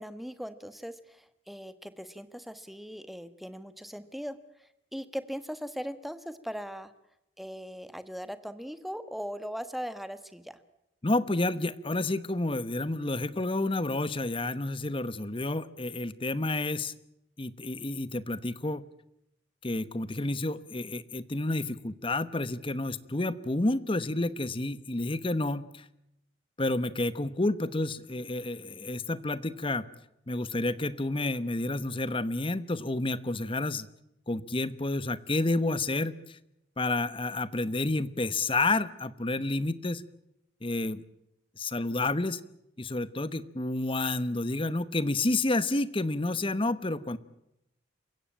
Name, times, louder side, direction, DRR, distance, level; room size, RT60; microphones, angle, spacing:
voice 1, 0.0-4.4 4.9-6.9 7.4-10.6, equal, ahead, 11 dB, 1.3 m, -39 dB
voice 2, 11.0-16.9 17.4-18.9 19.6-25.8 26.6-29.8 30.3-33.9 34.3-36.4 36.8-40.0 40.6-41.0 41.6-42.4 42.8-47.2, left 2 dB, 30° left, 16 dB, 1.0 m, -30 dB
28.0 x 16.0 x 8.8 m, 0.83 s
head